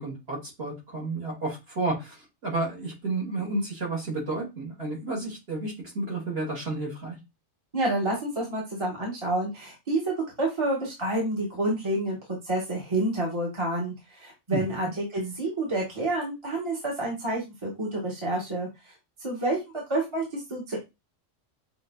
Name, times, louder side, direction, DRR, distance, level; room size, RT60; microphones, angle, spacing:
voice 1, 0.0-7.2 14.5-14.6, right 2 dB, 50° right, -3 dB, 2.3 m, -31 dB
voice 2, 7.7-12.2 12.4-18.7 19.2-20.8, right 1 dB, 25° right, -3 dB, 1.3 m, -29 dB
6.2 x 2.6 x 2.2 m, 0.23 s
omnidirectional pair, 1.3 m